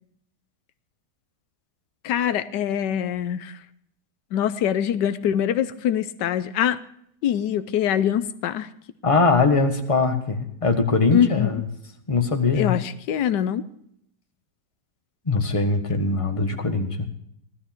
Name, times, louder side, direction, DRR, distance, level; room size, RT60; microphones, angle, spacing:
voice 1, 2.0-3.6 4.3-6.8 7.2-8.7 11.1-11.6 12.5-13.7, left 10 dB, 90° left, 13 dB, 1.4 m, -24 dB
voice 2, 9.0-11.6 12.1-12.8 15.3-17.1, left 4 dB, 20° left, 4 dB, 1.5 m, -21 dB
16.5 x 12.5 x 4.4 m, 0.69 s
omnidirectional pair, 1.8 m